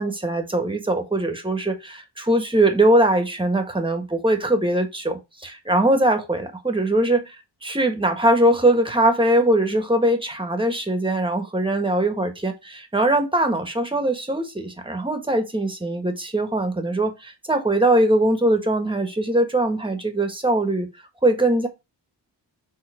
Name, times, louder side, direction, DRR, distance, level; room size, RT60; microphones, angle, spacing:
voice 1, 0.0-7.3 7.6-20.9 21.2-21.7, right 1 dB, 10° right, 1.6 m, -21 dB
6.6 x 3.9 x 5.0 m
wide cardioid pair, 95°, 44 cm